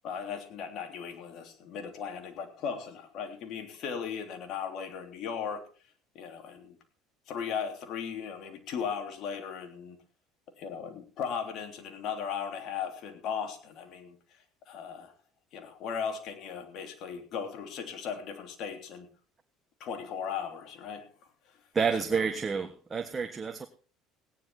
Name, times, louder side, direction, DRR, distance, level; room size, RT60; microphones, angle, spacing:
voice 1, 0.0-5.6 6.1-6.8 7.3-10.0 10.6-14.2 14.7-15.1 15.5-19.1 19.8-21.1, left 7 dB, 60° left, 3.3 m, -37 dB
voice 2, 21.7-23.7, right 5 dB, 25° right, 1.3 m, -29 dB
16.5 x 10.5 x 4.3 m
supercardioid pair, 90°, 0 cm